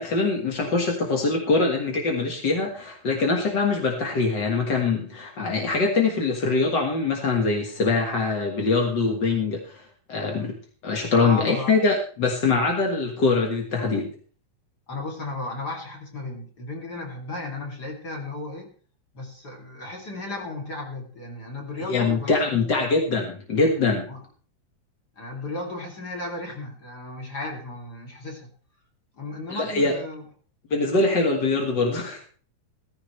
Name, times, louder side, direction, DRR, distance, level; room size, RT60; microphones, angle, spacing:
voice 1, 0.0-9.8 10.1-10.5 10.8-14.1 21.9-24.0 29.5-29.9 30.7-32.2, left 3 dB, 45° left, 1 dB, 1.5 m, -23 dB
voice 2, 11.2-11.8 14.9-18.7 19.1-22.6 24.1-24.2 25.2-28.5 29.1-30.3, left 2 dB, 30° left, 0 dB, 3.1 m, -35 dB
16.0 x 15.0 x 3.3 m, 0.42 s
omnidirectional pair, 4.3 m